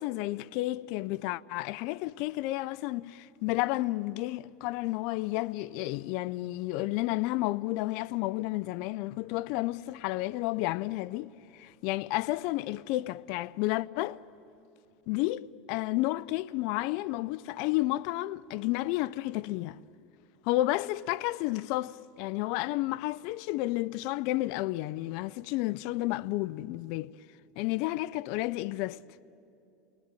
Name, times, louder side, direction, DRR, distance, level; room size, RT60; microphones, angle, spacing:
voice 1, 0.0-14.2 15.1-15.4 15.7-19.8 20.4-27.1 27.6-29.0, left 18 dB, 65° left, 0.5 m, -31 dB
28.5 x 19.0 x 9.1 m
supercardioid pair, 110°, 0 cm